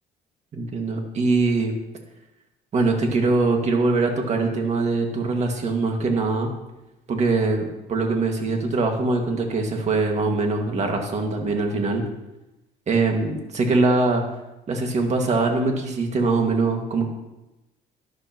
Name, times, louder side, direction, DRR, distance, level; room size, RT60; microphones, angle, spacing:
voice 1, 0.5-1.7 2.7-6.5 7.1-12.0 12.9-14.2 14.7-17.1, right 3 dB, 40° right, 2 dB, 2.0 m, -22 dB
12.0 x 11.5 x 3.1 m, 0.97 s
cardioid pair, 110°, 17 cm